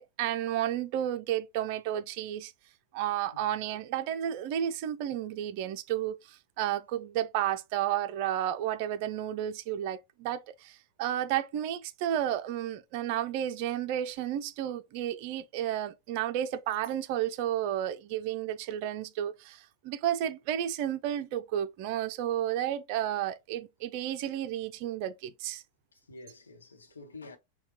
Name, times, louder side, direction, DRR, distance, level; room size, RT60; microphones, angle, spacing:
voice 1, 0.0-2.5 2.9-25.6, right 11 dB, 45° right, 0.5 m, -32 dB
voice 2, 25.9-27.4, left 3 dB, 75° left, 1.0 m, -49 dB
5.7 x 2.3 x 2.8 m
figure-of-eight pair, 90°, 0 cm